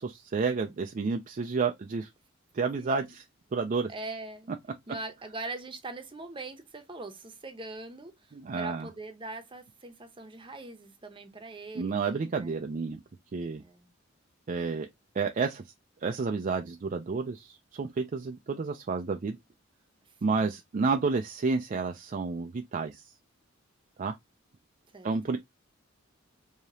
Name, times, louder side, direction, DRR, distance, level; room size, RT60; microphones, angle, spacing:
voice 1, 0.0-2.1 2.5-3.2 3.5-3.9 8.3-8.9 11.7-13.0 13.3-13.6 14.5-14.9 15.1-15.6 16.0-19.4 20.2-23.1 24.0-24.2 25.0-25.4, right 4 dB, 40° right, 0.4 m, -30 dB
voice 2, 2.8-3.1 3.9-4.5 4.9-12.5 13.6-13.9 24.9-25.2, right 2 dB, 25° right, 0.8 m, -42 dB
4.8 x 2.8 x 2.7 m
head